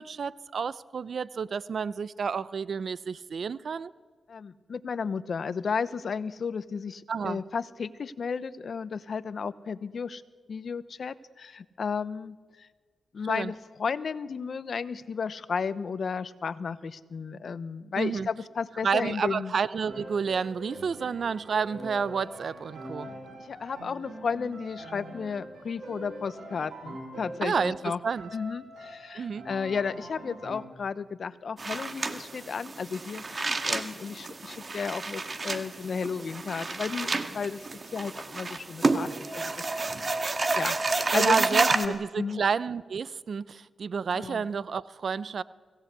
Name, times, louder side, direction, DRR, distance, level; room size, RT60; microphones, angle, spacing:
voice 1, 0.0-3.9 7.1-7.4 13.3-13.5 18.0-18.3 18.8-23.1 27.4-28.3 29.1-29.5 41.1-45.4, right 6 dB, 60° right, 18 dB, 0.7 m, -30 dB
voice 2, 4.3-10.2 10.5-12.7 13.1-19.5 23.4-28.0 28.3-37.6 37.9-39.5 40.5-40.8 41.1-42.4 44.1-44.4, left 5 dB, 60° left, 15 dB, 0.9 m, -33 dB
Piano, 19.8-27.9 28.1-30.5, right 1 dB, 85° right, 8.0 m, -43 dB
sound 1, 31.6-41.9, right 3 dB, 40° right, 1.8 m, -30 dB
25.0 x 17.5 x 8.3 m, 1.4 s
cardioid pair, 70°, 0 cm